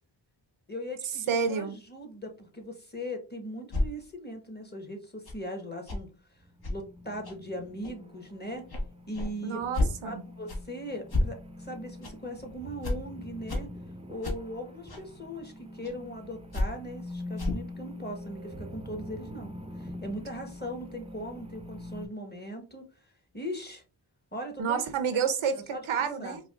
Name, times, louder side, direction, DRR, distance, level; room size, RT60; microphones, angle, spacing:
voice 1, 0.7-8.6 9.1-9.6 10.0-13.7 14.1-23.8 24.3-24.8 25.7-26.4, equal, 20° left, 3 dB, 1.2 m, -39 dB
voice 2, 1.3-1.8 9.4-10.2 24.6-26.4, right 6 dB, 80° right, 9 dB, 0.7 m, -29 dB
sound 1, 3.7-3.9 5.2-5.4 5.9-6.0 6.6-6.8 7.2-7.3 7.8-8.0 8.7-8.9 9.1-9.3 9.7-9.9 10.5-10.6 11.1-11.3 12.0-12.1 12.8-12.9 13.5-13.6 14.2-14.3 14.9-15.0 15.8-15.9 16.5-16.7 17.4-17.6, left 1 dB, 50° left, 1.2 m, -29 dB
sound 2, 6.4-22.1, left 1 dB, 15° right, 0.6 m, -44 dB
4.7 x 2.4 x 2.4 m, 0.34 s
cardioid pair, 50°, 48 cm